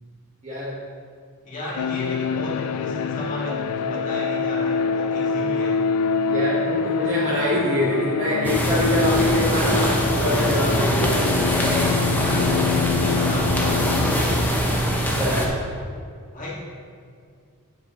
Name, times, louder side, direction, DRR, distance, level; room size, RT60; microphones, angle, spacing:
voice 1, 0.4-0.7 6.3-11.5 15.1-15.5, left 1 dB, 35° right, -9 dB, 1.2 m, -25 dB
voice 2, 1.4-5.8 11.5-14.0 16.3-16.6, left 1 dB, 35° left, -6 dB, 1.9 m, -33 dB
sound 1, 1.8-14.5, left 5 dB, 85° left, 0.3 m, -25 dB
sound 2, 8.4-15.5, equal, 10° left, 0.7 m, -22 dB
8.6 x 7.4 x 3.0 m, 2.2 s
head